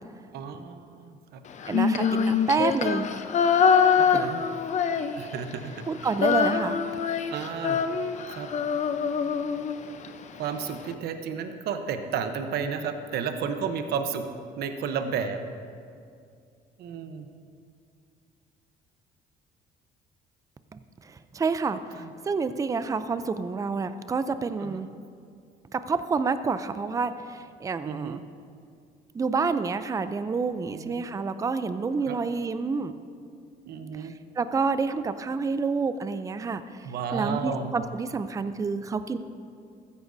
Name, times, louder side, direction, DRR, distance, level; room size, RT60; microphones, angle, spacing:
voice 1, 0.3-1.4 4.0-4.4 5.1-5.9 7.3-8.5 10.4-14.3 14.6-15.4 16.8-17.3 22.0-22.1 24.6-24.8 27.8-28.2 30.7-31.0 32.1-32.2 33.7-34.1 36.8-37.8, right 6 dB, 70° right, 7 dB, 0.9 m, -32 dB
Female singing, 1.6-5.5 5.8-10.1, left 6 dB, 45° left, 0.7 m, -24 dB
voice 2, 1.7-3.1 4.1-4.3 5.9-6.8 20.7-20.8 21.0-24.9 25.7-28.2 29.1-32.9 34.4-36.9 37.1-39.2, right 4 dB, 20° right, 12 dB, 0.5 m, -28 dB
15.0 x 13.5 x 2.7 m, 2.3 s
cardioid pair, 110°, 17 cm